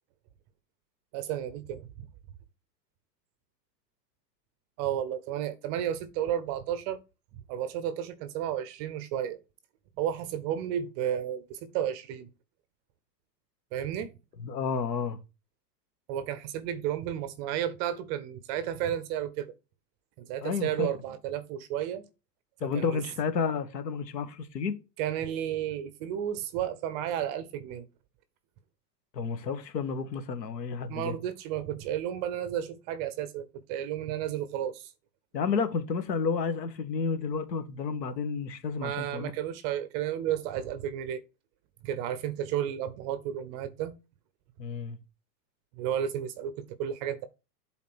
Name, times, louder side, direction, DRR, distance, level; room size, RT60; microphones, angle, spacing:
voice 1, 1.1-1.9 4.8-7.0 7.5-9.4 10.0-12.3 13.7-14.1 16.1-19.5 20.2-22.1 22.7-23.0 25.0-27.9 30.9-34.9 38.8-41.2 41.8-43.9 45.8-47.3, right 10 dB, 25° right, 0.5 m, -32 dB
voice 2, 14.4-15.2 20.4-20.9 22.6-24.8 29.1-31.1 35.3-39.3 44.6-45.0, left 5 dB, 85° left, 1.8 m, -31 dB
7.4 x 4.2 x 5.9 m
hypercardioid pair, 140°, 49 cm